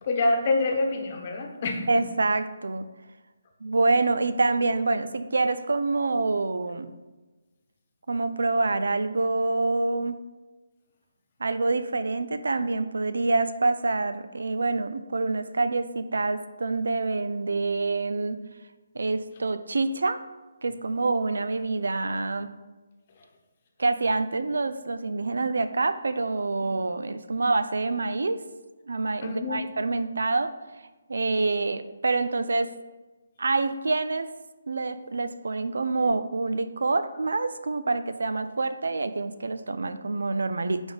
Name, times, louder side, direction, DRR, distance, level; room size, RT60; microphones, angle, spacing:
voice 1, 0.0-1.9 29.2-29.6, left 2 dB, 35° left, 3 dB, 1.0 m, -26 dB
voice 2, 1.9-2.9 3.6-6.9 8.1-10.2 11.4-18.4 18.9-20.2 20.6-22.5 23.8-28.4 28.9-30.5 31.1-32.7 33.4-34.3 34.7-40.8, right 3 dB, 85° right, 11 dB, 0.5 m, -26 dB
9.5 x 3.5 x 4.1 m, 1.2 s
hypercardioid pair, 170°, 0 cm